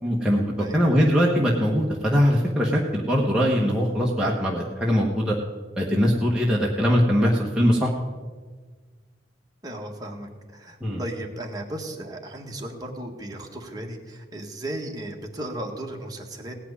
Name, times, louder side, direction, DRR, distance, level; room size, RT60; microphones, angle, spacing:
voice 1, 0.0-5.4 5.8-7.9 10.8-11.0, equal, 5° right, -4 dB, 1.2 m, -21 dB
voice 2, 0.6-1.1 9.6-16.5, right 1 dB, 20° right, 1 dB, 1.7 m, -35 dB
17.5 x 5.9 x 9.7 m, 1.5 s
head